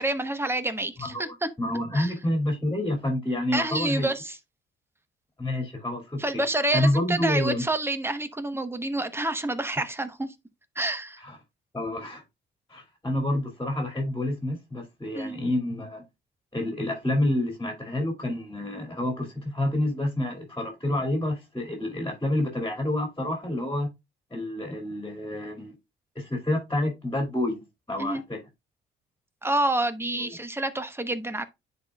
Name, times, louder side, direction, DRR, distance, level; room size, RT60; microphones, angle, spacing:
voice 1, 0.0-1.5 1.9-2.1 3.5-4.4 6.2-10.3 10.8-11.2 15.1-15.4 28.0-28.2 29.4-31.4, right 2 dB, 10° right, 0.9 m, -28 dB
voice 2, 1.0-4.1 5.4-6.4 6.7-7.6 11.2-11.4 11.7-12.2 12.7-16.0 16.5-23.9 24.3-25.7 26.2-27.6 27.9-28.4 30.2-30.4, left 1 dB, 15° left, 2.3 m, -28 dB
10.0 x 4.0 x 2.3 m
cardioid pair, 90°, 20 cm